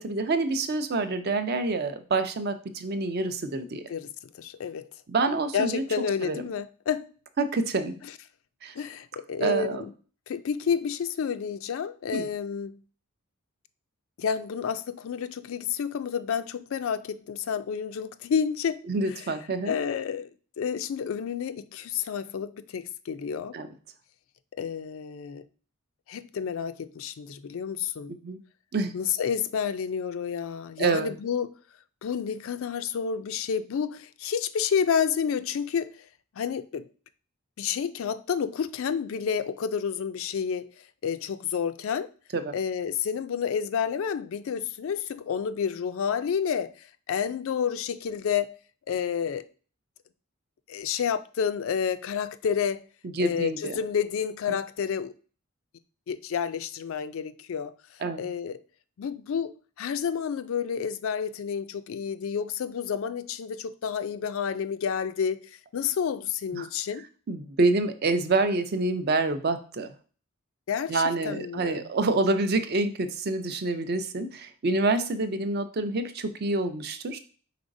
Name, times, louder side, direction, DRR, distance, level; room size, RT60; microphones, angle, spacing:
voice 1, 0.0-3.8 5.1-5.8 6.2-6.4 7.4-8.0 8.6-8.7 9.4-9.8 12.1-12.3 18.9-19.7 23.5-23.7 28.1-28.4 28.7-29.0 30.8-31.1 42.3-42.6 53.0-53.8 58.0-58.3 66.5-66.7 67.3-69.9 70.9-77.2, right 3 dB, 45° right, 0.4 m, -27 dB
voice 2, 4.4-4.9 5.5-7.1 8.8-9.9 10.3-12.8 14.2-18.8 19.2-19.3 19.7-20.3 20.6-23.6 24.6-25.5 26.1-28.1 28.9-31.5 32.0-36.1 36.4-36.9 37.6-40.7 41.0-42.1 42.5-48.5 48.9-49.5 50.7-52.8 53.2-55.1 56.1-57.7 58.2-58.6 59.0-67.1 70.7-71.9, left 7 dB, 65° left, 0.3 m, -30 dB
5.0 x 3.8 x 2.6 m
head